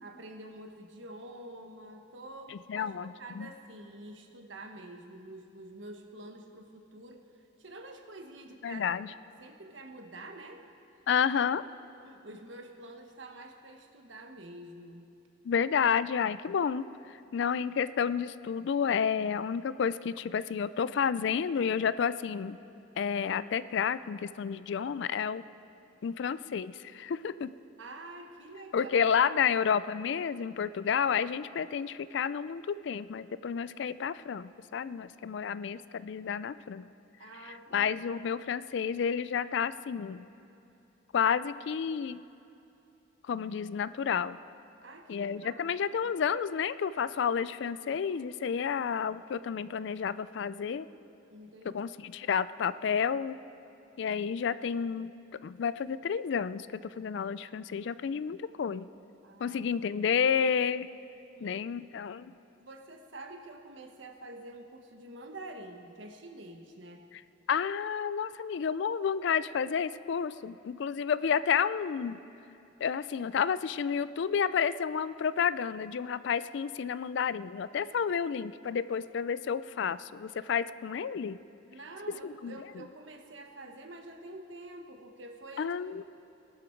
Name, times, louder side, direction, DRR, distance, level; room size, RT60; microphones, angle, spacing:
voice 1, 0.0-9.1 9.4-10.6 12.0-15.1 27.8-29.4 37.2-37.9 44.8-46.1 51.3-51.8 59.2-59.6 61.3-61.8 62.6-67.1 81.7-85.7, right 2 dB, 70° right, 4 dB, 1.3 m, -47 dB
voice 2, 2.5-3.5 8.6-9.1 11.1-11.6 15.5-16.8 17.3-22.6 23.0-25.4 26.0-27.5 28.7-36.8 37.7-40.3 41.1-42.2 43.3-44.4 45.1-50.9 51.7-53.4 54.0-55.1 55.4-58.9 59.4-60.9 61.4-62.3 67.5-72.2 72.8-81.4 82.2-82.5 85.6-86.0, left 7 dB, 65° left, 16 dB, 0.4 m, -30 dB
19.5 x 12.0 x 4.6 m, 2.8 s
head